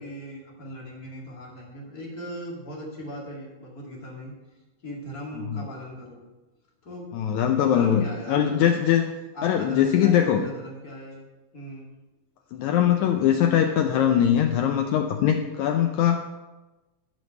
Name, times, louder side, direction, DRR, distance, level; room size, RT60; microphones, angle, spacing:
voice 1, 0.0-4.3 4.8-6.3 6.8-7.1 7.5-8.7 9.3-11.3 11.5-11.9, equal, 30° left, -3 dB, 2.4 m, -38 dB
voice 2, 7.1-9.0 9.4-10.4 12.5-16.2, left 9 dB, 85° left, 5 dB, 1.6 m, -21 dB
13.0 x 5.2 x 6.6 m, 1.1 s
omnidirectional pair, 4.0 m